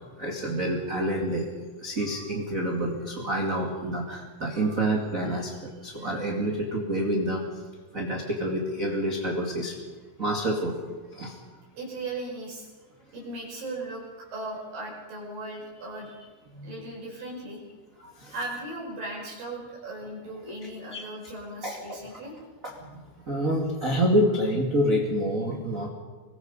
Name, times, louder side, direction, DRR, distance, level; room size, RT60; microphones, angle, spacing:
voice 1, 0.0-1.5 1.8-7.4 7.9-9.8 10.2-10.8 11.1-11.4 16.5-16.7 18.0-18.3 20.9-21.0 21.6-22.2 22.6-25.9, right 1 dB, 25° right, 0 dB, 1.9 m, -28 dB
voice 2, 11.8-12.7 13.1-16.3 16.6-17.6 18.3-22.3, right 2 dB, 55° right, -3 dB, 6.5 m, -37 dB
26.0 x 22.0 x 5.4 m, 1.4 s
omnidirectional pair, 4.8 m